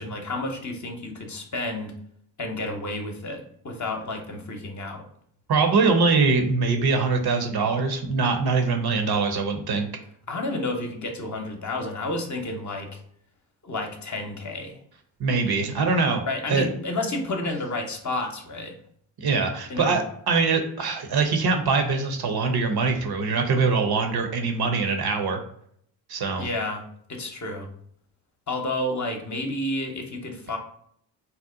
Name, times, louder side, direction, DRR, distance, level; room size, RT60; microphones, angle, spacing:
voice 1, 0.0-1.9 2.4-5.0 10.3-13.0 13.6-14.8 16.3-18.7 19.7-20.0 26.4-27.7 28.5-30.6, left 2 dB, 35° left, 3 dB, 0.8 m, -31 dB
voice 2, 5.5-9.9 15.2-16.2 16.5-16.7 19.2-25.4 26.1-26.5, right 4 dB, 50° right, 5 dB, 0.8 m, -23 dB
2.8 x 2.1 x 3.7 m, 0.66 s
supercardioid pair, 50°, 49 cm